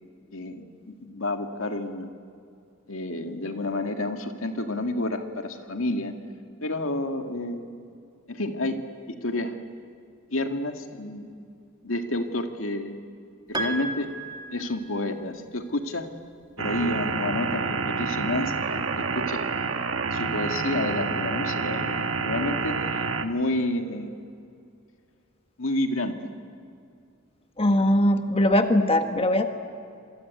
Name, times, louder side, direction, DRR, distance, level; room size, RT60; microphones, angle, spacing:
voice 1, 0.3-2.1 2.9-6.2 6.6-7.8 8.3-8.8 9.1-9.6 10.3-11.4 11.8-13.0 13.5-14.1 14.5-16.1 16.6-19.4 20.1-24.3 25.6-26.4, left 1 dB, 85° left, 5 dB, 2.1 m, -30 dB
Piano, 13.5-15.2, right 2 dB, 20° right, 2.1 m, -34 dB
sound 1, 16.6-23.3, right 4 dB, 70° right, 1.4 m, -28 dB
voice 2, 27.6-29.6, left 1 dB, 30° left, 6 dB, 1.3 m, -21 dB
27.0 x 23.0 x 9.4 m, 2.4 s
head